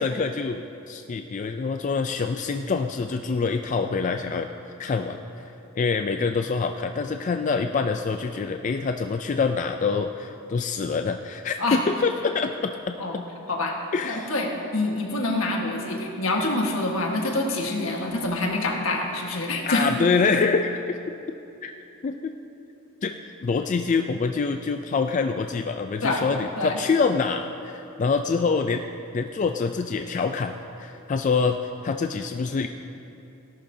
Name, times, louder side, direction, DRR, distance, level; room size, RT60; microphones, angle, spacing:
voice 1, 0.0-4.5 4.8-13.2 13.9-14.3 19.7-21.0 21.6-21.7 22.0-22.3 23.0-28.8 29.1-32.7, left 4 dB, 35° left, 6 dB, 0.3 m, -26 dB
voice 2, 14.0-19.9 26.0-26.2 26.6-26.8, left 2 dB, 80° left, 1 dB, 1.5 m, -26 dB
17.5 x 11.5 x 2.7 m, 2.8 s
head